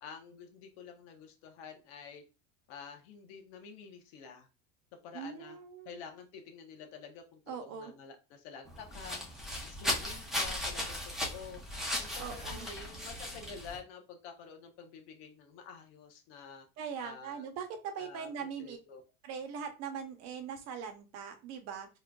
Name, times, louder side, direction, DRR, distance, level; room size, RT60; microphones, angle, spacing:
voice 1, 0.0-2.2 2.7-4.5 5.0-5.6 5.8-9.2 9.6-11.6 12.0-16.7 17.0-17.4 18.0-19.0, left 6 dB, 75° left, 5 dB, 1.0 m, -49 dB
voice 2, 5.1-6.0 7.5-7.9 12.2-12.7 16.8-18.8 19.2-21.9, right 7 dB, 55° right, 6 dB, 0.9 m, -41 dB
sound 1, 8.6-13.8, left 1 dB, ahead, 0.8 m, -37 dB
3.7 x 3.1 x 2.3 m, 0.31 s
supercardioid pair, 130°, 30 cm